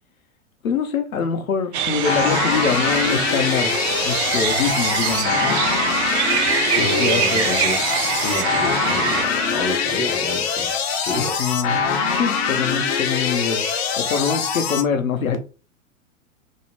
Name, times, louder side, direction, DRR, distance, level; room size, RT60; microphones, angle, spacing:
voice 1, 0.6-3.7 4.0-5.6 6.7-7.5 11.1-11.8 12.2-13.7 14.0-15.4, left 6 dB, 85° left, 0.7 m, -24 dB
sound 1, 1.7-9.3, right 9 dB, 55° right, 0.5 m, -24 dB
sound 2, 2.0-14.8, left 6 dB, 50° left, 0.6 m, -23 dB
sound 3, 2.8-14.2, right 7 dB, 70° right, 0.9 m, -40 dB
voice 2, 6.7-10.7 11.1-11.4, left 2 dB, 15° left, 0.3 m, -29 dB
2.6 x 2.0 x 3.0 m
hypercardioid pair, 105°, 40 cm